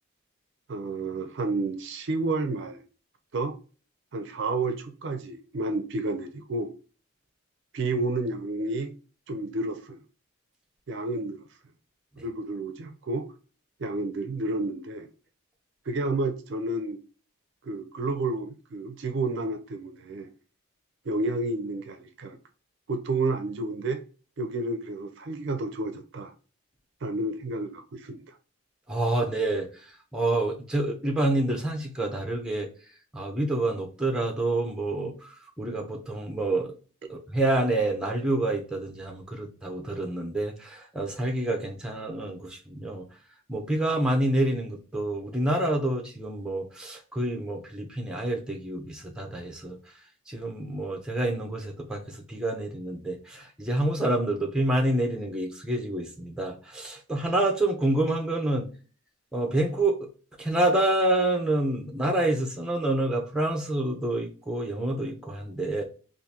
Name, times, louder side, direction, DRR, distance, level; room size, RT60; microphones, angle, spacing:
voice 1, 0.7-2.8 3.3-3.6 4.1-6.7 7.7-8.9 9.3-10.0 10.9-11.4 12.2-13.2 13.8-15.1 15.9-17.0 17.6-20.3 21.0-22.4 22.9-24.0 24.4-26.3 27.0-28.4, right 2 dB, 55° right, 0.4 m, -30 dB
voice 2, 28.9-29.7 30.1-32.7 33.1-35.1 35.6-36.7 37.1-43.0 43.5-49.8 50.3-58.7 59.3-60.0 60.4-65.8, right 1 dB, 5° right, 0.6 m, -27 dB
3.6 x 2.6 x 2.8 m
head